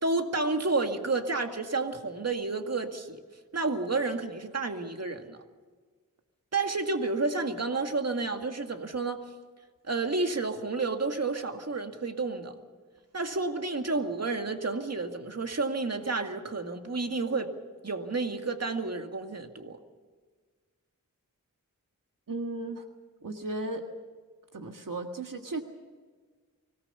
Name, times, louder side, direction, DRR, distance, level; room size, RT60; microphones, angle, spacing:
voice 1, 0.0-3.2 3.5-5.4 6.5-9.2 9.8-12.5 13.1-17.5 17.8-19.8, right 3 dB, 50° right, 5 dB, 2.1 m, -30 dB
voice 2, 22.3-22.8 23.2-23.8 24.5-25.6, right 2 dB, 70° right, 4 dB, 1.8 m, -35 dB
24.5 x 18.5 x 7.0 m, 1.5 s
wide cardioid pair, 70°, 33 cm